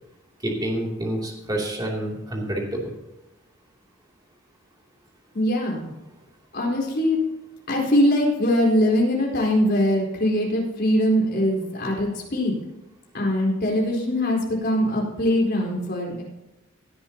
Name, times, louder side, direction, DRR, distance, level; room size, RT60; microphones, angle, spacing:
voice 1, 0.4-2.9, right 1 dB, 20° right, -2 dB, 2.8 m, -28 dB
voice 2, 5.3-5.9 6.5-7.2 7.7-12.5 13.1-16.2, left 1 dB, 50° left, -2 dB, 4.2 m, -22 dB
17.5 x 11.0 x 2.9 m, 0.99 s
head